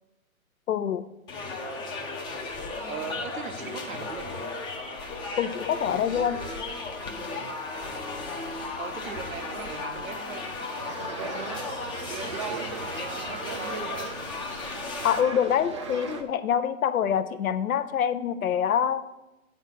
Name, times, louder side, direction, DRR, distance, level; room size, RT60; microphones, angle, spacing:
voice 1, 0.7-1.1 5.4-6.4 15.0-19.0, left 8 dB, 75° left, 12 dB, 0.6 m, -25 dB
sound 1, 1.3-15.2, left 3 dB, 10° left, 0.6 m, -35 dB
voice 2, 2.9-4.4 7.3-8.0 8.8-11.4 11.9-14.1, right 7 dB, 70° right, 9 dB, 1.0 m, -40 dB
sound 2, 10.8-16.2, right 4 dB, 25° right, 0.3 m, -37 dB
8.9 x 4.1 x 6.2 m, 0.98 s
figure-of-eight pair, 125°, 42 cm